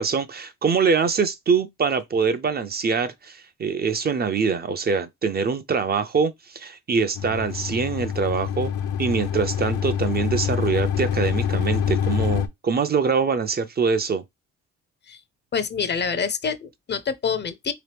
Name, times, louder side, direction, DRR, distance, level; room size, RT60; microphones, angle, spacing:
voice 1, 0.0-8.7 9.0-14.2, right 5 dB, 30° right, 0.5 m, -24 dB
sound 1, 7.2-12.5, left 8 dB, 90° left, 0.6 m, -25 dB
voice 2, 15.5-17.7, left 6 dB, 35° left, 0.5 m, -26 dB
3.6 x 2.9 x 3.3 m
cardioid pair, 90°, 30 cm